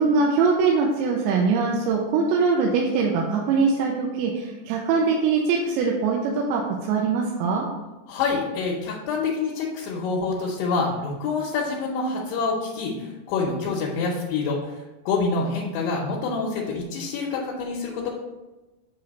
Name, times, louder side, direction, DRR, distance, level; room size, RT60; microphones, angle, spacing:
voice 1, 0.0-7.7, right 4 dB, 85° right, -1 dB, 2.9 m, -22 dB
voice 2, 8.1-18.1, left 4 dB, 75° left, -3 dB, 2.8 m, -27 dB
8.3 x 3.2 x 5.2 m, 1.1 s
omnidirectional pair, 5.2 m